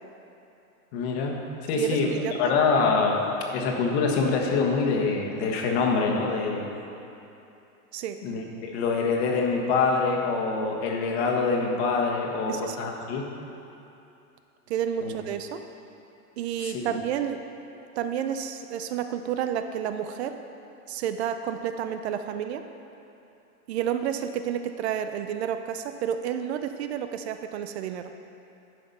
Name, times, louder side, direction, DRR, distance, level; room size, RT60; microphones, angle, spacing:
voice 1, 0.9-1.3 1.7-3.2 3.5-6.7 8.2-13.2 15.0-15.1 16.6-16.9, left 4 dB, 45° left, 1 dB, 1.4 m, -25 dB
voice 2, 1.8-2.4 7.9-8.2 12.5-12.8 14.7-15.6 16.4-17.4 18.0-20.4 20.9-22.6 23.7-28.1, right 9 dB, 50° right, 8 dB, 0.5 m, -30 dB
11.0 x 5.7 x 5.4 m, 2.8 s
supercardioid pair, 145°, 44 cm